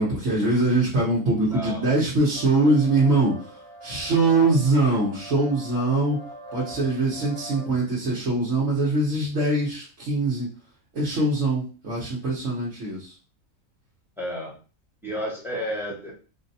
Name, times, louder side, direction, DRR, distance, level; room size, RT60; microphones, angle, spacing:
voice 1, 0.0-3.3 3.8-6.2 6.5-10.5 10.9-13.1, right 2 dB, 65° right, -6 dB, 1.3 m, -22 dB
voice 2, 1.5-1.9 14.2-14.6 15.0-16.1, equal, ahead, -3 dB, 0.9 m, -31 dB
sound 1, 2.3-7.7, right 1 dB, 25° left, 0.7 m, -42 dB
4.3 x 2.1 x 2.7 m, 0.35 s
omnidirectional pair, 1.4 m